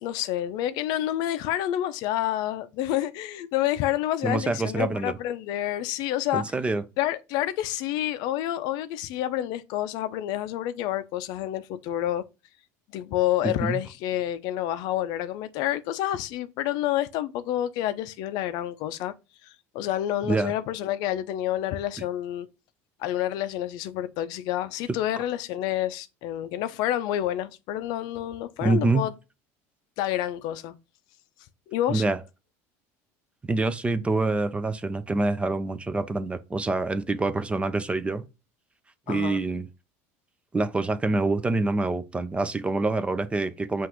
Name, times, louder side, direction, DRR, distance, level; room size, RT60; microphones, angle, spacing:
voice 1, 0.0-6.4 7.0-12.2 12.9-19.1 19.4-22.5 23.0-29.1 30.0-30.7 31.7-32.0 39.1-39.4, left 12 dB, 65° left, 0.5 m, -28 dB
voice 2, 4.2-5.1 6.3-6.8 13.4-13.8 20.2-20.5 24.9-25.0 28.6-29.1 31.9-32.2 33.4-38.2 39.1-39.7 40.5-43.9, right 3 dB, 15° right, 0.4 m, -26 dB
5.8 x 2.5 x 2.9 m
supercardioid pair, 100°, 7 cm